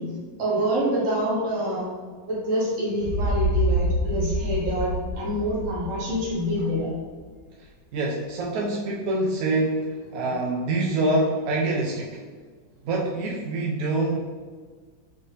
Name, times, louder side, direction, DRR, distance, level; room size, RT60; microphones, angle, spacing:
voice 1, 0.0-1.9 2.3-6.9 10.3-10.4, equal, 45° right, -4 dB, 1.3 m, -26 dB
sound 1, 3.0-6.9, right 1 dB, 70° left, 1.1 m, -26 dB
voice 2, 7.6-12.2 12.8-14.2, right 2 dB, 75° right, -2 dB, 0.8 m, -26 dB
5.4 x 2.7 x 3.3 m, 1.5 s
omnidirectional pair, 2.1 m